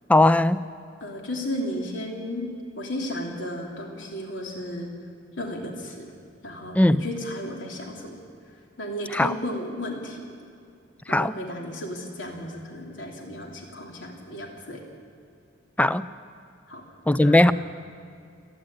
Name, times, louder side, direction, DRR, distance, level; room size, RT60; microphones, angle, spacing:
voice 1, 0.1-0.6 6.7-7.0 9.1-9.4 11.1-11.3 15.8-16.1 17.1-17.5, left 1 dB, 5° left, 15 dB, 0.4 m, -18 dB
voice 2, 1.0-2.5 2.8-4.9 5.4-6.1 6.4-8.2 8.8-10.2 11.1-14.8 16.7-16.8 17.2-17.5, left 1 dB, 75° left, 0 dB, 3.0 m, -34 dB
27.5 x 9.8 x 9.8 m, 2.4 s
head